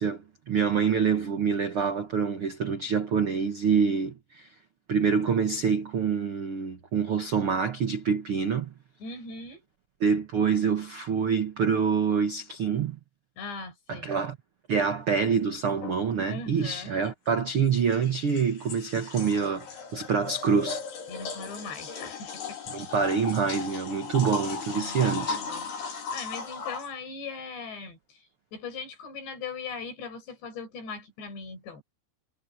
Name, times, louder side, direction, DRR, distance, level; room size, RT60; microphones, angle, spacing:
voice 1, 0.0-4.5 4.9-8.7 10.0-13.0 13.9-14.4 14.7-20.8 22.7-25.4, right 6 dB, 85° right, 1.2 m, -26 dB
voice 2, 9.0-9.6 13.4-14.1 16.3-17.0 21.1-22.6 24.7-31.8, left 4 dB, 90° left, 7.7 m, -40 dB
sound 1, 15.8-16.0 17.7-26.9, left 5 dB, 75° left, 6.5 m, -37 dB
omnidirectional pair, 4.8 m